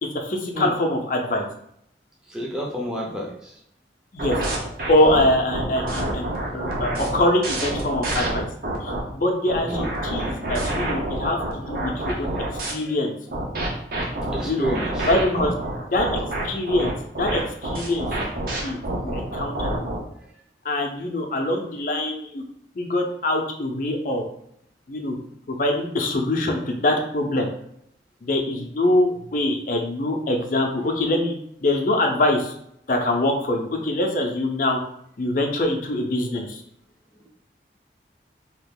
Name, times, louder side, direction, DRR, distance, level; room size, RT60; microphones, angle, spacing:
voice 1, 0.0-1.5 4.1-4.4 4.9-8.5 8.8-12.3 12.7-13.1 14.4-14.7 15.1-15.5 15.9-16.9 17.2-18.1 18.6-18.8 19.0-19.7 20.6-22.4 22.8-24.2 24.9-25.2 25.5-27.5 28.3-31.3 31.6-32.5 32.9-34.8 35.2-36.6, left 1 dB, 45° left, 2 dB, 0.5 m, -24 dB
voice 2, 2.3-3.6 9.7-9.9 11.7-12.2 12.5-12.9 14.3-15.5, right 1 dB, 5° right, -3 dB, 0.5 m, -31 dB
sound 1, 4.2-9.0 9.5-12.7 13.3-20.0, right 1 dB, 55° right, 0.7 m, -27 dB
2.8 x 2.4 x 3.6 m, 0.71 s
head